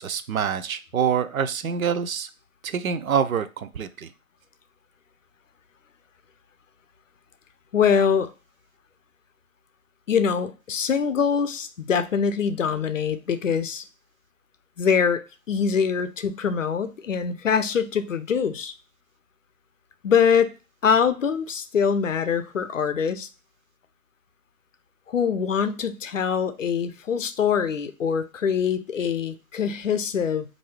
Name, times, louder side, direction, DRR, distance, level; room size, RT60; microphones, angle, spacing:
voice 1, 0.0-2.3 2.6-4.1, right 7 dB, 70° right, 11 dB, 0.5 m, -26 dB
voice 2, 7.7-8.3 10.1-13.8 14.8-18.7 20.0-20.5 20.8-23.3 25.1-30.5, left 6 dB, 60° left, 10 dB, 0.5 m, -23 dB
3.7 x 2.6 x 3.2 m, 0.31 s
figure-of-eight pair, 160°, 43 cm